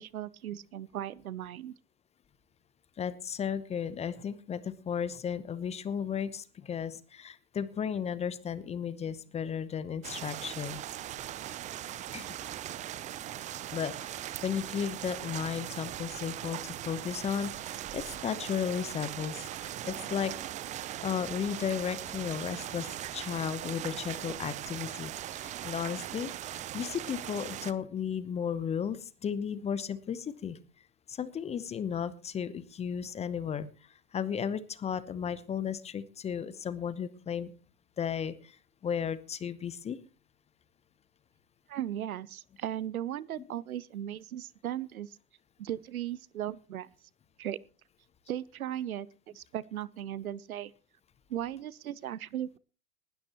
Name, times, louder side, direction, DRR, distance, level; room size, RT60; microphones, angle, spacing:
voice 1, 0.0-1.7 41.7-45.2 45.6-46.9 47.4-47.6 48.3-49.1 49.3-50.7 51.3-52.6, right 11 dB, 65° right, 0.8 m, -37 dB
voice 2, 3.0-10.8 12.1-12.4 13.7-20.3 21.0-30.6 31.1-37.5 38.0-38.6 38.8-40.0, left 7 dB, 15° left, 0.8 m, -34 dB
sound 1, 10.0-27.7, right 12 dB, 15° right, 0.6 m, -40 dB
19.5 x 12.5 x 3.0 m
figure-of-eight pair, 110°, 46 cm